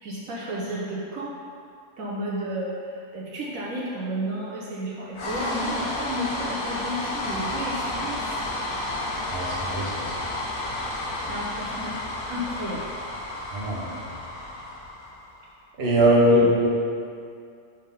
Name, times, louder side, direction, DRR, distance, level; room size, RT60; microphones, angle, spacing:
voice 1, 0.0-1.3 2.0-8.4 11.3-12.0 12.3-12.8 16.1-16.6, equal, 70° right, -5 dB, 1.1 m, -32 dB
sound 1, 5.1-15.4, left 1 dB, 80° left, 1.4 m, -31 dB
voice 2, 9.3-10.1 13.5-14.0 15.8-16.7, equal, 45° right, -4 dB, 1.2 m, -21 dB
5.4 x 3.7 x 5.6 m, 2.4 s
omnidirectional pair, 1.5 m